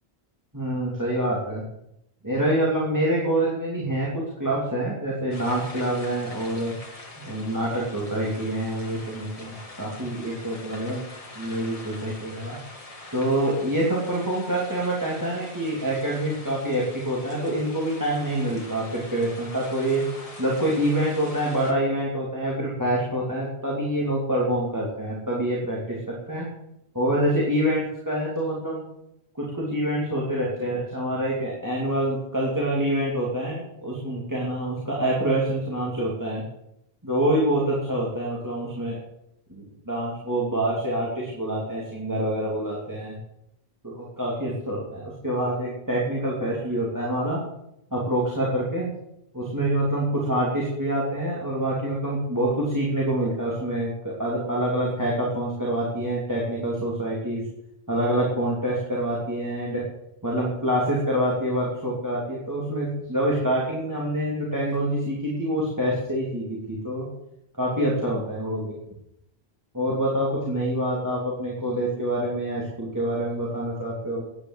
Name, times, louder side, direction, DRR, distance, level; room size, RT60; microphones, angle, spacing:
voice 1, 0.5-1.6 2.2-6.7 7.2-11.0 11.3-12.6 13.1-20.0 20.4-26.5 26.9-28.8 29.3-36.4 37.0-39.0 39.5-43.2 43.8-47.4 47.9-48.9 49.3-57.4 57.9-59.8 60.2-67.1 67.5-68.7 69.7-74.2, right 1 dB, 15° right, -4 dB, 2.9 m, -26 dB
sound 1, 5.3-21.7, left 2 dB, 30° left, 2.4 m, -43 dB
11.0 x 9.5 x 8.0 m, 0.82 s
omnidirectional pair, 1.1 m